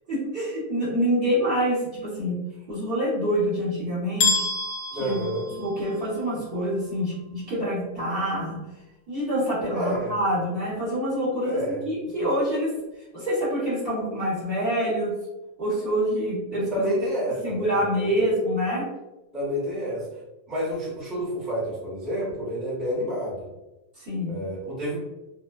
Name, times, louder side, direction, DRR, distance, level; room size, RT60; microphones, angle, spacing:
voice 1, 0.1-2.4 2.7-4.4 5.0-5.2 5.6-8.6 9.1-12.7 13.1-15.1 15.6-16.8 17.4-18.8 24.0-24.4, equal, 45° right, -9 dB, 1.0 m, -26 dB
sound 1, 4.2-6.2, left 3 dB, 65° left, 0.8 m, -27 dB
voice 2, 4.9-5.4 9.7-10.1 11.4-11.8 16.7-18.3 19.3-20.1 20.5-23.5 24.3-25.0, equal, ahead, -8 dB, 0.7 m, -29 dB
2.5 x 2.2 x 2.2 m, 1.0 s
omnidirectional pair, 1.6 m